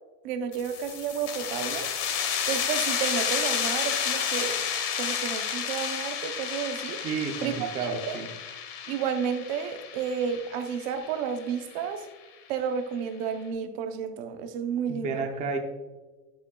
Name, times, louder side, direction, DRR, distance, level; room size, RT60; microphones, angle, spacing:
voice 1, 0.2-1.9 2.5-4.6 5.0-7.0 7.4-8.2 8.9-12.1 12.5-15.2, right 7 dB, 45° right, 0.8 m, -31 dB
sound 1, 0.5-11.9, left 8 dB, 40° left, 1.3 m, -31 dB
voice 2, 7.0-8.3 14.9-15.6, right 5 dB, 15° right, 0.6 m, -31 dB
11.0 x 8.4 x 2.3 m
supercardioid pair, 170°, 43 cm